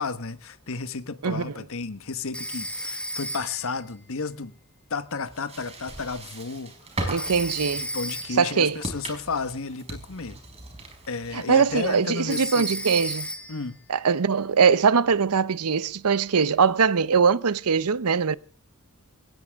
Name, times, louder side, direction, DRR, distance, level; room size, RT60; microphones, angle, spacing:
voice 1, 0.0-4.5 4.9-6.7 7.0-7.3 7.7-10.4 11.1-12.8 13.5-13.8, left 4 dB, 65° left, 1.2 m, -32 dB
voice 2, 1.2-1.5 7.1-7.8 8.4-8.8 11.3-13.3 13.9-18.3, right 6 dB, 85° right, 0.7 m, -22 dB
Telephone, 2.3-3.8 7.2-8.6 12.3-13.7, equal, 5° left, 1.9 m, -33 dB
sound 1, 5.3-12.6, right 2 dB, 30° right, 4.6 m, -38 dB
19.5 x 18.0 x 3.5 m
head